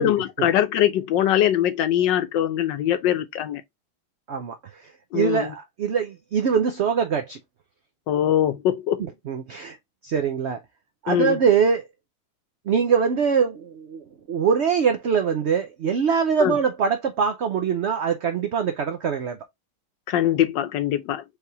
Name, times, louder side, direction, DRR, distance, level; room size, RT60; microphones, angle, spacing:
voice 1, 0.0-3.6 5.1-5.5 8.1-9.0 11.1-11.4 16.4-16.6 20.1-21.2, left 11 dB, 90° left, 1.4 m, -22 dB
voice 2, 4.3-7.4 9.0-9.8 10.0-10.6 11.0-11.8 12.7-19.4, right 6 dB, 70° right, 0.6 m, -23 dB
4.7 x 3.4 x 2.7 m
omnidirectional pair, 1.9 m